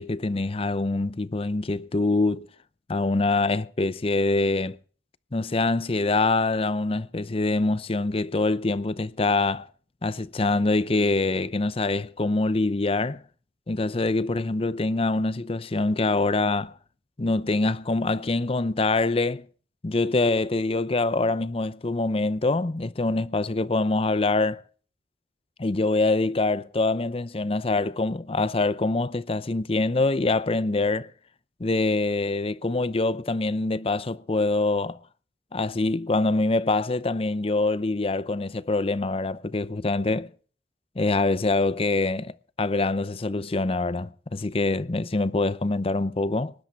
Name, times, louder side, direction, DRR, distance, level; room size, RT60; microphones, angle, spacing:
voice 1, 0.0-2.5 2.9-4.8 5.3-9.7 10.0-13.2 13.7-16.7 17.2-19.4 19.8-24.6 25.6-31.1 31.6-35.0 35.5-40.3 41.0-46.5, left 2 dB, 30° left, 0.6 m, -25 dB
19.5 x 11.0 x 4.6 m
head